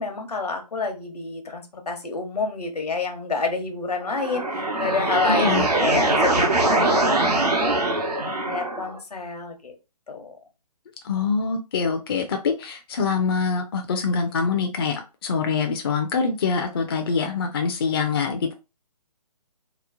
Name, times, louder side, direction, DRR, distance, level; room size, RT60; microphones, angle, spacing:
voice 1, 0.0-7.7 8.2-9.7 10.1-10.4, left 4 dB, 80° left, 4 dB, 0.9 m, -29 dB
sound 1, 4.0-9.0, right 2 dB, 90° right, 0.9 m, -22 dB
voice 2, 5.3-5.7 11.0-18.5, left 5 dB, 40° left, 4 dB, 0.4 m, -24 dB
2.9 x 2.0 x 2.5 m, 0.28 s
figure-of-eight pair, 140°, 20 cm